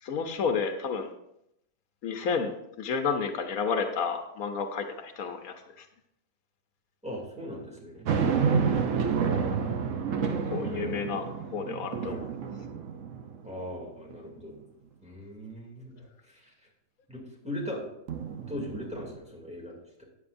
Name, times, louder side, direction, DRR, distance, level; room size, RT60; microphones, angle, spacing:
voice 1, 0.0-1.1 2.0-2.5 2.8-5.9 10.5-11.2 11.5-12.2, left 5 dB, 75° left, 6 dB, 1.2 m, -31 dB
voice 2, 7.0-8.1 10.6-11.0 12.0-12.2 13.4-14.6 15.0-16.5 17.1-17.8 18.5-20.0, left 1 dB, 5° right, -3 dB, 2.5 m, -39 dB
sound 1, 8.0-13.6 14.1-14.2 18.1-19.2, right 6 dB, 65° right, 1.1 m, -29 dB
13.0 x 9.1 x 2.6 m, 0.80 s
omnidirectional pair, 1.5 m